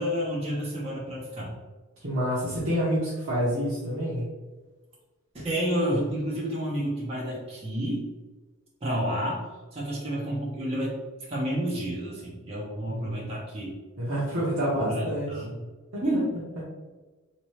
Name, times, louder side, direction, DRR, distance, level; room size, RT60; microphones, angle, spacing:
voice 1, 0.0-1.5 5.3-8.1 8.8-9.4 9.7-11.0 11.3-13.7 14.8-15.6 16.0-16.3, equal, 30° right, -6 dB, 0.9 m, -30 dB
voice 2, 2.0-4.3 12.9-13.2 14.0-15.3 15.9-16.0, equal, 65° right, -8 dB, 1.0 m, -28 dB
3.7 x 2.9 x 3.2 m, 1.2 s
head